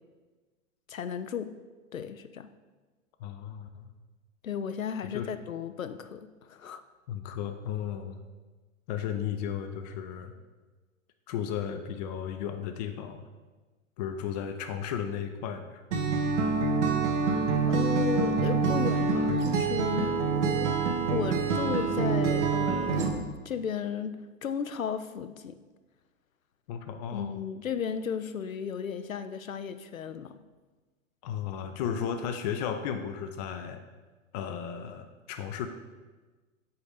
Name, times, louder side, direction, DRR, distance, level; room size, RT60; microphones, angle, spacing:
voice 1, 0.9-1.5 1.9-2.5 4.4-6.8 17.7-20.8 21.1-25.6 27.1-30.4, left 7 dB, 80° left, 10 dB, 0.5 m, -34 dB
voice 2, 3.2-3.9 5.0-5.3 7.1-8.2 8.9-10.3 11.3-13.2 14.0-15.8 21.8-22.0 26.7-27.4 31.2-33.8 34.3-35.7, left 8 dB, 35° left, 7 dB, 0.5 m, -34 dB
Acoustic guitar, 15.9-23.1, right 4 dB, 60° right, 1.1 m, -26 dB
8.1 x 4.1 x 5.0 m, 1.3 s
figure-of-eight pair, 100°, 40 cm